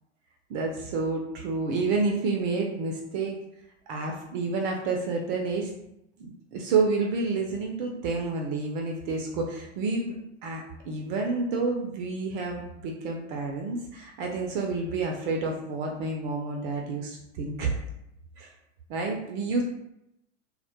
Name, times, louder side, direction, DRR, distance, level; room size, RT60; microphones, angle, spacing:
voice 1, 0.5-3.4 3.9-5.7 6.2-17.8 18.4-18.5 18.9-19.6, right 3 dB, 45° right, 1 dB, 0.4 m, -29 dB
2.1 x 2.1 x 2.8 m, 0.83 s
hypercardioid pair, 95°, 36 cm